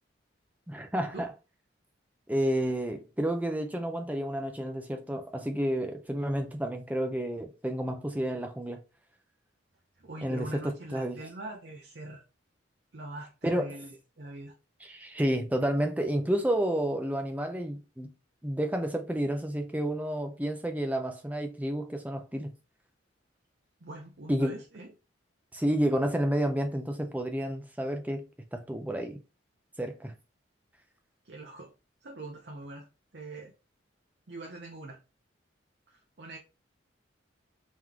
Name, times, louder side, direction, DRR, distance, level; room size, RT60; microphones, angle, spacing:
voice 1, 0.7-1.3 2.3-8.8 10.2-11.2 13.4-13.7 14.9-18.1 18.4-22.5 24.3-24.6 25.5-28.3 28.5-29.2 29.8-30.1, right 1 dB, 10° right, 0.5 m, -30 dB
voice 2, 10.0-12.2 12.9-14.5 23.8-24.9 31.2-31.7 32.0-32.9 33.1-33.5 34.3-35.0 35.9-36.4, right 2 dB, 60° right, 0.7 m, -43 dB
3.8 x 3.1 x 3.6 m
head